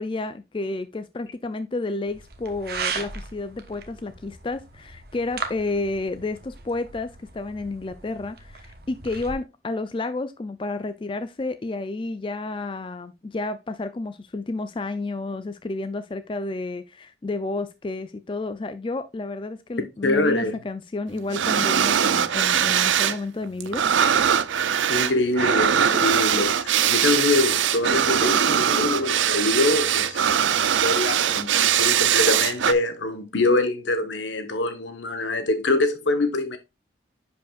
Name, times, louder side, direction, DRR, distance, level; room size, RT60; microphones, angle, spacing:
voice 1, 0.0-23.8, left 2 dB, 25° left, 0.4 m, -31 dB
sound 1, 2.1-9.3, right 5 dB, 55° right, 1.1 m, -37 dB
voice 2, 20.0-20.6 24.9-36.6, left 2 dB, 80° left, 1.2 m, -24 dB
sound 2, 21.3-23.2 23.4-32.7, right 9 dB, 85° right, 0.5 m, -21 dB
10.5 x 5.1 x 2.4 m
head